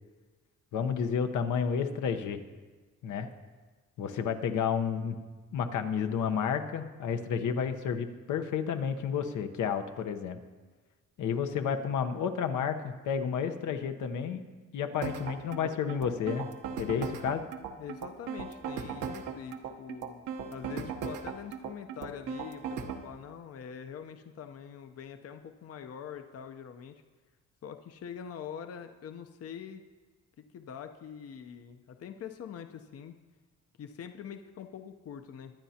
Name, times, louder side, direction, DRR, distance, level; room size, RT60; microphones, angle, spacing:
voice 1, 0.7-2.4 3.0-3.3 4.0-5.2 5.5-10.4 11.2-14.4 14.7-16.5 16.8-17.4, left 7 dB, 80° left, 7 dB, 1.0 m, -31 dB
sound 1, 15.0-23.0, right 6 dB, 85° right, 1.1 m, -37 dB
voice 2, 17.8-20.2 20.5-27.0 27.6-29.8 30.4-33.2 33.8-35.5, left 8 dB, 50° left, 7 dB, 0.8 m, -44 dB
22.0 x 9.1 x 2.9 m, 1.4 s
cardioid pair, 90°, 30 cm